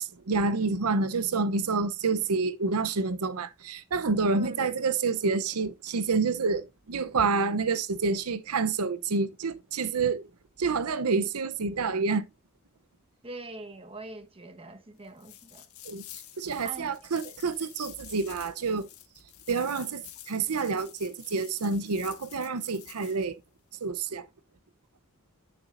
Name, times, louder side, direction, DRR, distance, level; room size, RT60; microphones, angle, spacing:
voice 1, 0.0-10.3 10.6-12.2 15.8-18.9 19.5-23.4 23.8-24.3, right 4 dB, 85° right, 0.7 m, -28 dB
voice 2, 4.3-4.7 13.2-15.7 16.6-16.9 17.2-17.3, right 2 dB, 25° right, 1.2 m, -43 dB
sound 1, 15.2-23.3, left 12 dB, 75° left, 1.5 m, -49 dB
11.0 x 6.8 x 2.5 m
head